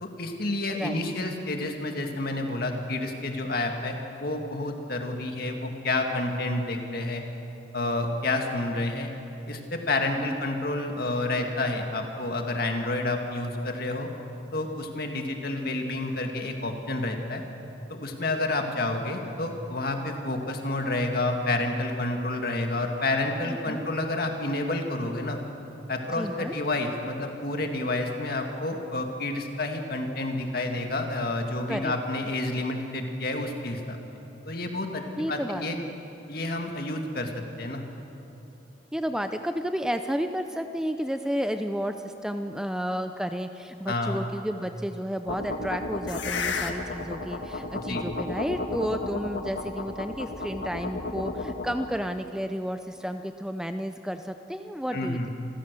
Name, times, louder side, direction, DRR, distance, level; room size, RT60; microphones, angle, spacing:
voice 1, 0.0-4.0 4.2-7.2 7.7-9.1 9.5-14.1 14.5-17.4 17.9-25.4 25.9-34.0 34.5-35.8 36.3-37.3 37.6-37.8 43.9-44.2 47.7-48.0 54.9-55.3, left 2 dB, 55° left, 3 dB, 2.0 m, -29 dB
voice 2, 0.7-1.0 10.2-10.4 23.5-23.8 26.1-26.5 31.7-31.9 35.2-35.9 38.9-55.3, equal, 5° right, 7 dB, 0.5 m, -32 dB
sound 1, 45.3-51.9, left 3 dB, 80° left, 1.5 m, -32 dB
27.5 x 15.5 x 6.8 m, 2.9 s
head